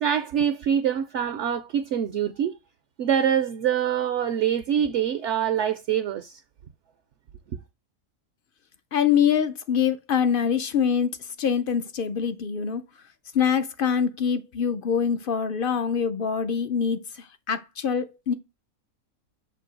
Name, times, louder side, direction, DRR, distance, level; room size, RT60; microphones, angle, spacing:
voice 1, 0.0-2.6 3.0-6.4 7.5-7.6, right 9 dB, 65° right, 0.7 m, -25 dB
voice 2, 8.9-12.8 13.3-18.3, left 7 dB, 70° left, 0.5 m, -24 dB
6.8 x 2.7 x 5.0 m
omnidirectional pair, 1.6 m